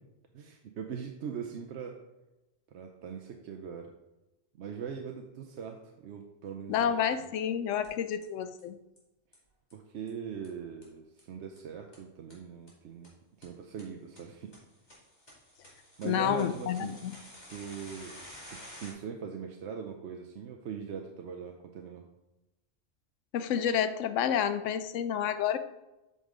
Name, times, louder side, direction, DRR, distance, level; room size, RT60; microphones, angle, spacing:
voice 1, 0.3-2.0 2.7-3.9 4.6-6.9 9.7-13.1 13.4-14.5 16.0-16.9 17.5-18.2 18.5-22.1, right 7 dB, 65° right, 3 dB, 0.9 m, -41 dB
voice 2, 6.7-8.8 16.0-17.2 23.3-25.6, left 9 dB, 75° left, 12 dB, 0.9 m, -29 dB
sound 1, 7.8-7.9 8.2-8.3 8.6-8.7 9.0-9.1 9.3-9.4 9.7-9.8 10.1-10.2 10.4-10.5 10.8-10.9 11.2-11.3 11.6-11.7 11.9-12.0 12.3-12.4 12.7-12.8 13.0-13.1 13.4-13.5 13.8-13.9 14.2-14.3 14.5-18.9, left 1 dB, 35° left, 2.4 m, -50 dB
8.2 x 5.4 x 3.8 m, 0.99 s
omnidirectional pair, 1.3 m